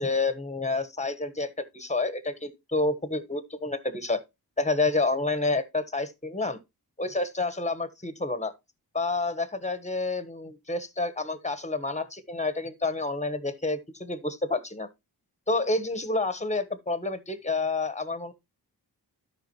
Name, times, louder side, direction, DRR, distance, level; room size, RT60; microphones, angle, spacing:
voice 1, 0.0-4.2 4.6-6.6 7.0-8.5 8.9-14.9 15.5-18.3, left 3 dB, 15° left, 1.3 m, -29 dB
12.5 x 5.1 x 3.1 m
cardioid pair, 65°, 41 cm